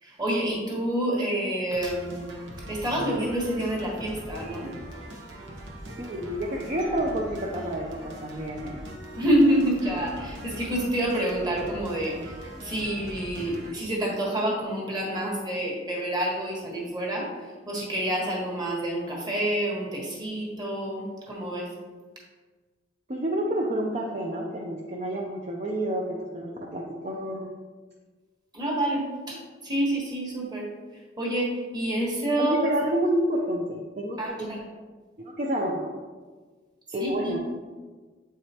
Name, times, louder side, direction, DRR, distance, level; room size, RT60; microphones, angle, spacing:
voice 1, 0.0-2.3 2.7-4.7 9.2-12.3 12.6-21.7 28.5-30.7 31.2-32.7 34.2-34.6 37.0-37.4, right 1 dB, 25° right, -3 dB, 1.4 m, -28 dB
sound 1, 1.7-13.7, equal, 85° right, 1.0 m, -41 dB
voice 2, 6.0-8.8 23.1-27.5 32.4-34.6 35.2-35.9 36.9-37.4, right 1 dB, 40° right, -2 dB, 0.6 m, -29 dB
7.7 x 4.8 x 2.9 m, 1.4 s
head